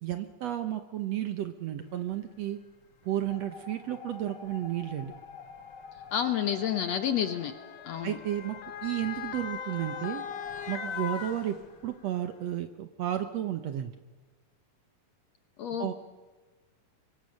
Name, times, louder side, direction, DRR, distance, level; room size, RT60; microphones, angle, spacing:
voice 1, 0.0-2.6 3.0-5.1 8.0-10.2 10.7-11.6 11.8-13.9 15.8-15.9, right 12 dB, 65° right, 9 dB, 1.7 m, -32 dB
Motor vehicle (road) / Siren, 2.1-2.2 3.2-3.4 4.5-12.1 12.5-12.6, left 7 dB, 90° left, 0.9 m, -41 dB
sound 1, 3.3-11.0, left 5 dB, 40° left, 1.9 m, -48 dB
voice 2, 6.1-7.5 7.9-8.2 15.6-15.9, left 9 dB, 65° left, 9 dB, 1.8 m, -29 dB
24.5 x 23.5 x 6.5 m, 1.3 s
omnidirectional pair, 3.9 m